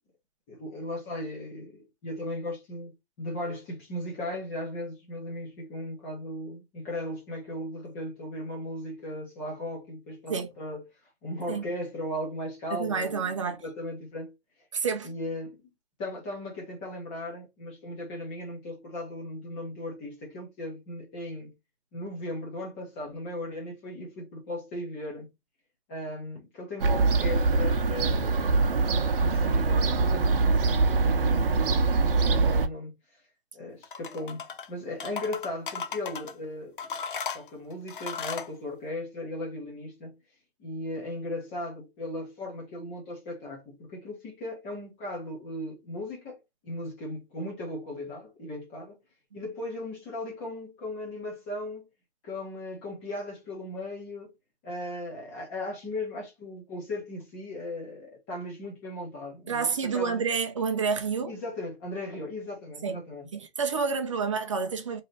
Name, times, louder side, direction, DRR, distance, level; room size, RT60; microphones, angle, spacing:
voice 1, 0.5-2.9 3.2-10.8 11.2-14.3 15.0-15.6 16.0-21.5 21.9-25.3 25.9-33.0 33.5-37.0 37.3-40.2 40.6-49.0 49.3-51.8 52.2-54.3 54.6-60.2 61.3-63.3, left 1 dB, 10° left, 0.8 m, -37 dB
voice 2, 12.7-13.6 14.7-15.1 59.5-61.3 62.8-63.0 63.3-65.0, right 5 dB, 30° right, 0.5 m, -29 dB
Fowl / Gull seagull, 26.8-32.7, right 3 dB, 60° right, 0.8 m, -23 dB
sound 1, 33.8-34.7 35.0-36.3 36.8-38.5, left 6 dB, 55° left, 0.6 m, -36 dB
3.2 x 2.8 x 4.0 m
hypercardioid pair, 170°, 32 cm